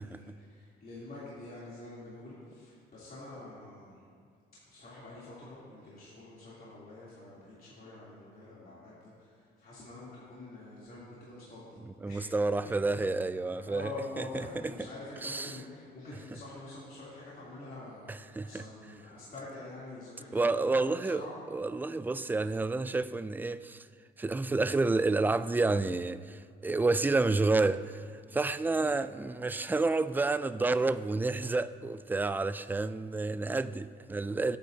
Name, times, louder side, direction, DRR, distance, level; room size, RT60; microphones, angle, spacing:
voice 1, 0.0-4.0 4.7-12.4 12.8-13.1 13.6-21.4 28.8-28.9, left 2 dB, 50° left, 3.1 m, -46 dB
voice 2, 11.9-14.9 15.2-15.6 18.1-18.7 20.3-23.9 24.2-34.6, right 3 dB, 10° right, 0.3 m, -30 dB
16.5 x 9.5 x 2.8 m
cardioid pair, 90°, 20 cm